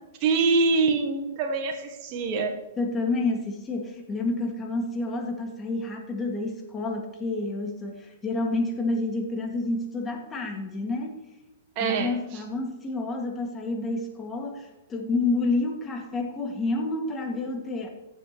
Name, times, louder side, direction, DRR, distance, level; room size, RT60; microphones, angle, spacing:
voice 1, 0.2-2.6 11.7-12.4, right 4 dB, 40° right, 4 dB, 1.2 m, -25 dB
voice 2, 2.8-11.2 11.8-17.9, left 2 dB, 20° left, 2 dB, 2.1 m, -29 dB
15.0 x 7.4 x 3.1 m, 1.0 s
hypercardioid pair, 115°, 0 cm